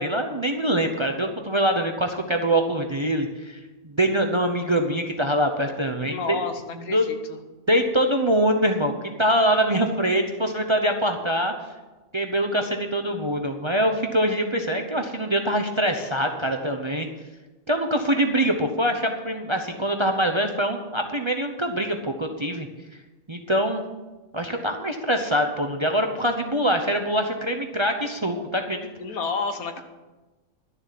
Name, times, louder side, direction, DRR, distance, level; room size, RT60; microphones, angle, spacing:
voice 1, 0.0-3.6 3.8-6.4 6.9-7.1 7.7-8.9 9.2-11.5 12.1-17.1 17.7-22.7 23.3-23.9 24.3-28.9, right 1 dB, 25° right, 5 dB, 0.7 m, -24 dB
voice 2, 6.0-7.4 29.0-29.8, left 4 dB, 80° left, 7 dB, 1.5 m, -30 dB
12.0 x 6.9 x 7.5 m, 1.2 s
omnidirectional pair, 1.5 m